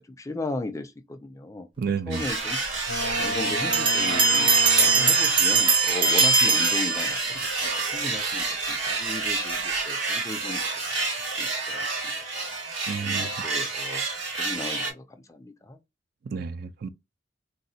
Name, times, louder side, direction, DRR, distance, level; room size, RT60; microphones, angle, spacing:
voice 1, 0.0-1.7 2.1-2.6 3.2-10.6 11.0-12.1 13.0-14.0 14.4-15.8, left 2 dB, 15° left, 0.4 m, -36 dB
voice 2, 1.8-2.2 12.9-13.3 16.2-16.9, right 6 dB, 55° right, 0.3 m, -30 dB
sound 1, 2.1-14.9, right 3 dB, 80° right, 1.5 m, -29 dB
Boat Water vehicle, 2.9-5.6, left 1 dB, 65° left, 0.6 m, -33 dB
Bell, 3.7-7.5, right 4 dB, 25° right, 0.7 m, -21 dB
4.0 x 2.1 x 2.7 m
head